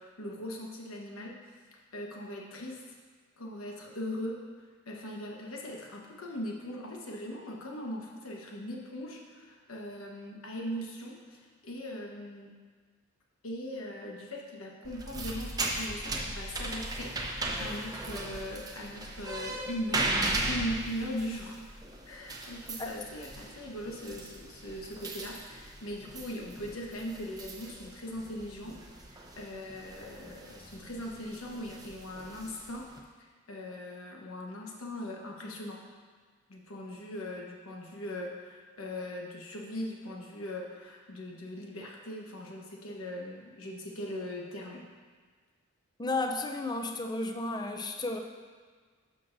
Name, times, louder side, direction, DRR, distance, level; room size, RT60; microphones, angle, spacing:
voice 1, 0.0-1.3 1.7-2.8 3.4-4.4 4.9-12.5 13.4-21.6 22.1-28.8 29.1-32.9 33.5-35.8 36.5-44.8, left 1 dB, 90° left, -1 dB, 1.2 m, -40 dB
sound 1, 14.8-33.0, right 2 dB, 20° right, 0.6 m, -38 dB
voice 2, 46.0-48.2, left 2 dB, 20° left, 5 dB, 0.5 m, -33 dB
12.0 x 6.2 x 2.6 m, 1.5 s
head